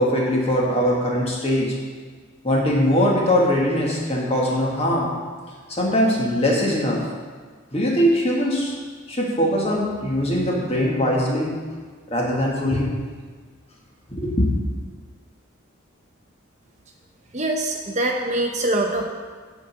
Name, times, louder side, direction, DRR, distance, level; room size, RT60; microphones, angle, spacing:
voice 1, 0.0-1.8 2.4-5.2 5.7-7.1 7.7-8.8 9.1-11.6 12.1-12.9 14.1-14.5, equal, 30° left, -2 dB, 1.7 m, -21 dB
voice 2, 17.3-19.0, right 1 dB, 35° right, 2 dB, 0.7 m, -23 dB
9.1 x 5.1 x 7.9 m, 1.5 s
head